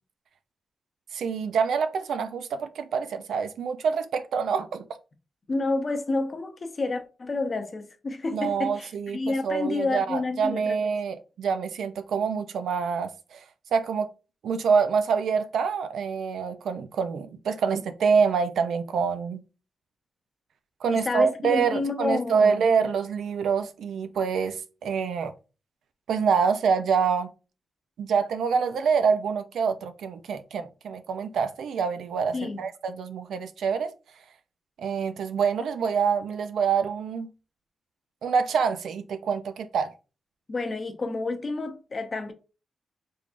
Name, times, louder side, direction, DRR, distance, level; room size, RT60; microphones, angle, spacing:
voice 1, 1.1-4.8 8.3-13.4 13.7-14.1 14.4-19.4 20.8-25.3 26.1-27.3 28.0-33.9 34.8-37.3 38.2-39.9, right 6 dB, 85° right, 0.4 m, -26 dB
voice 2, 5.5-10.8 20.9-22.6 32.3-32.6 40.5-42.3, left 3 dB, 35° left, 0.6 m, -29 dB
3.6 x 3.2 x 2.5 m
cardioid pair, 105°, 0 cm